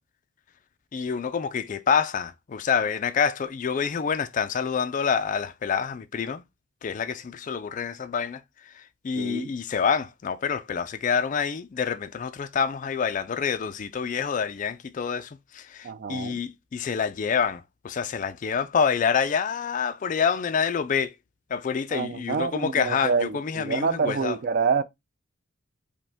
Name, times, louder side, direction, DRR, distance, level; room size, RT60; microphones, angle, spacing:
voice 1, 0.9-6.4 6.8-8.4 9.0-21.1 21.5-24.4, left 6 dB, 40° left, 0.3 m, -27 dB
voice 2, 9.2-9.5 15.8-16.4 21.9-24.8, right 5 dB, 45° right, 0.3 m, -27 dB
5.1 x 2.2 x 3.4 m
head